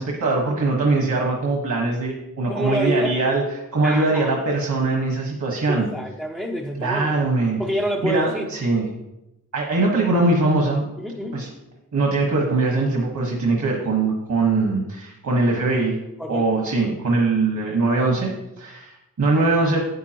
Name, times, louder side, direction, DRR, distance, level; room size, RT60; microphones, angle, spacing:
voice 1, 0.0-3.4 3.7-5.9 6.8-7.6 8.0-8.9 9.5-10.8 11.3-11.5 11.9-15.9 16.3-18.3 18.6-19.8, right 3 dB, 55° right, -1 dB, 1.5 m, -21 dB
voice 2, 2.5-3.1 3.8-4.3 5.7-7.2 7.6-8.5 11.0-11.4 16.2-16.4, equal, 5° right, -1 dB, 0.6 m, -27 dB
9.4 x 9.3 x 3.0 m, 0.93 s
wide cardioid pair, 155°, 36 cm